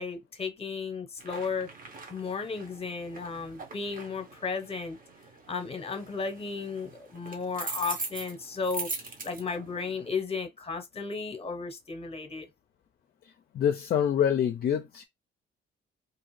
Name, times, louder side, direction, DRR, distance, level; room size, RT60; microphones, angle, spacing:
voice 1, 0.0-1.7 2.1-5.0 5.5-8.9 9.2-12.5, left 4 dB, 30° left, 0.9 m, -34 dB
sound 1, 1.2-10.1, right 4 dB, 45° right, 0.9 m, -42 dB
voice 2, 13.5-15.1, left 9 dB, 50° left, 0.4 m, -26 dB
2.6 x 2.4 x 3.1 m
cardioid pair, 90°, 20 cm